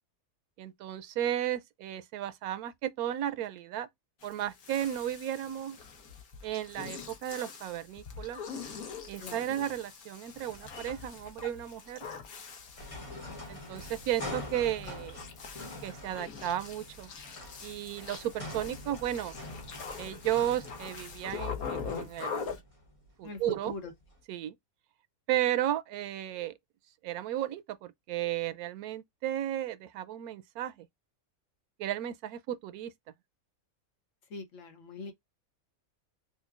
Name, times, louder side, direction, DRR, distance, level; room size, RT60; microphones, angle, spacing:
voice 1, 0.6-3.9 4.2-5.8 6.4-8.4 9.1-12.0 13.5-15.2 15.8-17.1 17.6-19.4 20.0-22.6 23.2-23.7 24.3-24.5 25.3-26.5 27.0-30.9 31.8-32.9, right 12 dB, 90° right, 1.1 m, -34 dB
sound 1, 4.2-22.6, left 6 dB, 80° left, 1.4 m, -43 dB
sound 2, 12.8-24.1, left 1 dB, 25° left, 1.0 m, -45 dB
voice 2, 23.2-23.9 34.3-35.1, left 3 dB, 60° left, 1.2 m, -42 dB
5.6 x 2.2 x 2.4 m
omnidirectional pair, 1.5 m